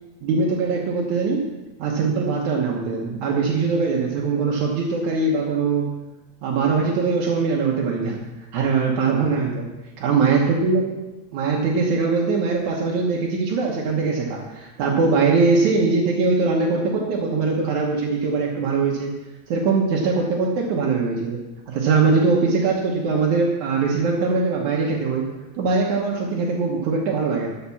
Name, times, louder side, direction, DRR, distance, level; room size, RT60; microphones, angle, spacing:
voice 1, 0.2-1.5 1.8-5.9 6.4-8.2 8.5-9.6 10.0-10.9 11.3-19.1 19.5-21.4 21.7-25.2 25.6-27.5, right 4 dB, 80° right, -2 dB, 2.6 m, -21 dB
11.5 x 5.9 x 7.0 m, 1.1 s
omnidirectional pair, 3.3 m